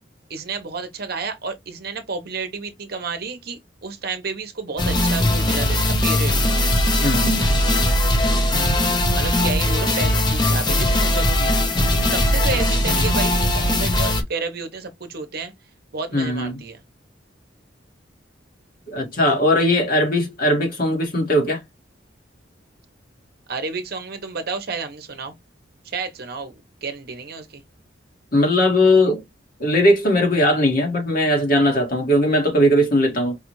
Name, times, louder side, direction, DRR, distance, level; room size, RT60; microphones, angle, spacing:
voice 1, 0.3-6.3 9.1-11.5 12.1-15.5 15.9-16.8 23.5-25.3 25.8-26.5 26.8-27.6, right 4 dB, 55° right, 0.8 m, -30 dB
sound 1, 4.8-14.2, left 1 dB, 25° left, 0.6 m, -19 dB
voice 2, 7.0-7.4 16.1-16.6 18.9-21.6 28.3-29.2 29.6-33.4, left 1 dB, 50° left, 1.6 m, -19 dB
4.7 x 2.4 x 3.0 m
head